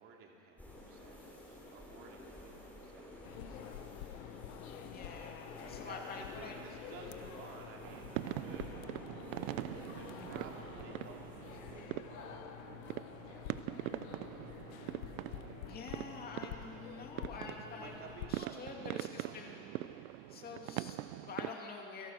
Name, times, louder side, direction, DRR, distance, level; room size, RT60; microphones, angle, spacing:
voice 1, 0.0-4.5 4.9-9.2 9.6-16.4 16.7-17.0 17.8-19.6, right 5 dB, 30° right, 0 dB, 2.8 m, -56 dB
sound 1, 0.6-11.9, left 1 dB, 5° left, 4.0 m, -52 dB
sound 2, 3.2-18.3, left 12 dB, 85° left, 1.2 m, -49 dB
voice 2, 4.9-6.5 15.7-18.0 18.3-19.6 20.3-22.1, left 4 dB, 20° left, 1 dB, 2.4 m, -47 dB
sound 3, 7.8-21.5, right 15 dB, 75° right, 0.8 m, -43 dB
28.5 x 17.0 x 6.5 m, 2.8 s
supercardioid pair, 165°, 41 cm